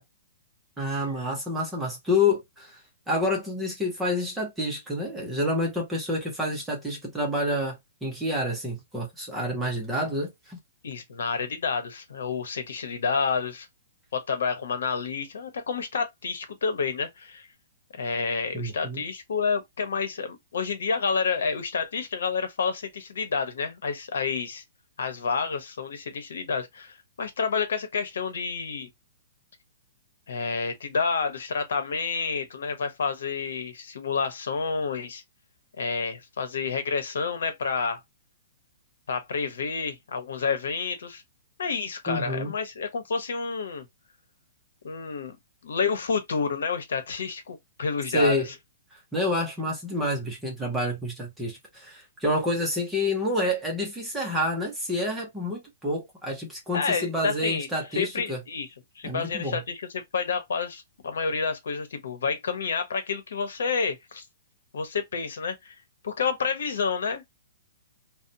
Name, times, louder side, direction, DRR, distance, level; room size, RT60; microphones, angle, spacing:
voice 1, 0.8-2.8 3.1-10.6 18.5-19.0 42.1-42.5 48.1-48.5 48.9-58.4 59.0-59.6, left 1 dB, 5° right, 0.6 m, -28 dB
voice 2, 10.8-13.7 14.1-17.5 17.9-24.6 25.0-28.9 30.3-35.2 35.8-38.0 39.1-41.2 41.6-43.9 44.8-45.4 45.6-48.3 56.7-58.7 59.0-64.2 64.7-65.8 66.0-67.4, left 5 dB, 75° left, 0.9 m, -29 dB
2.8 x 2.0 x 2.6 m
hypercardioid pair, 180°, 0 cm